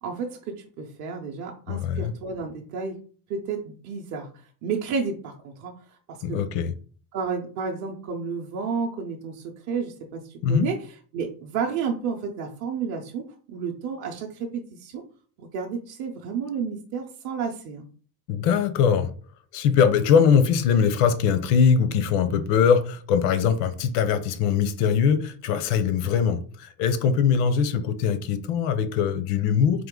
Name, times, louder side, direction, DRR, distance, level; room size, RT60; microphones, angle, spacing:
voice 1, 0.0-3.0 3.3-4.3 4.6-6.4 7.1-10.2 10.5-10.8 11.1-15.0 15.4-17.9, right 5 dB, 40° right, 0.5 m, -31 dB
voice 2, 1.7-2.1 6.2-6.7 10.4-10.7 18.3-19.1 19.5-29.9, left 7 dB, 90° left, 0.7 m, -22 dB
3.8 x 2.8 x 3.7 m
cardioid pair, 150°, 45 cm